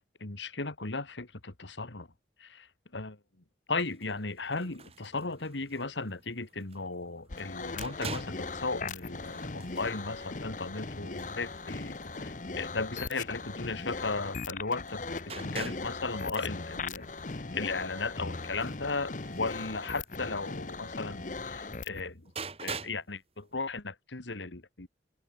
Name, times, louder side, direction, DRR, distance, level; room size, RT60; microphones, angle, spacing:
voice 1, 0.0-2.1 2.4-3.2 3.7-12.0 12.2-22.3 22.6-24.9, left 3 dB, 85° left, 2.0 m, -36 dB
sound 1, 3.8-14.6 14.8-23.1 23.4-23.5, right 4 dB, 35° right, 2.1 m, -47 dB
sound 2, 7.3-22.1, left 3 dB, 45° left, 0.9 m, -39 dB
open air
head